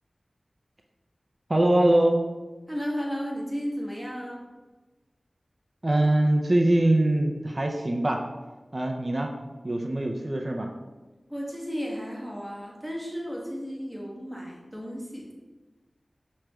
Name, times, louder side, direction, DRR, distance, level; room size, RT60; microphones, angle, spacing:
voice 1, 1.5-2.2 5.8-8.2 8.7-9.3 9.6-10.7, right 1 dB, 45° right, 2 dB, 0.4 m, -23 dB
voice 2, 2.7-4.5 11.3-15.3, equal, 5° left, -3 dB, 1.1 m, -34 dB
6.0 x 3.1 x 2.3 m, 1.2 s
wide cardioid pair, 45°, 0 cm